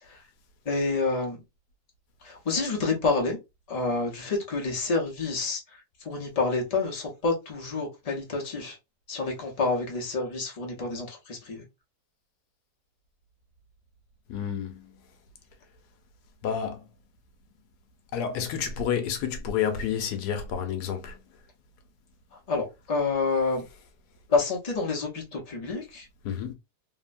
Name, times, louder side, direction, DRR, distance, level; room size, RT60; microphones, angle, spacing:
voice 1, 0.7-1.4 2.2-3.4 3.7-5.6 6.0-8.8 9.1-11.6 22.5-23.6 24.3-26.1, left 3 dB, 35° left, 0.6 m, -28 dB
voice 2, 14.3-14.9 16.4-16.8 18.1-21.2 26.2-26.5, left 8 dB, 80° left, 1.2 m, -30 dB
3.2 x 2.1 x 2.4 m
omnidirectional pair, 1.7 m